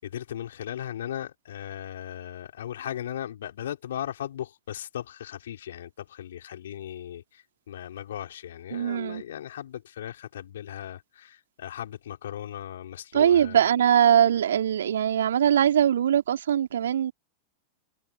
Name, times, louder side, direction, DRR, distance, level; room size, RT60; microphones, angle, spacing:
voice 1, 0.0-13.6, left 11 dB, 60° left, 4.6 m, -37 dB
voice 2, 8.7-9.2 13.1-17.1, right 9 dB, 65° right, 3.1 m, -21 dB
figure-of-eight pair, 90°, 0 cm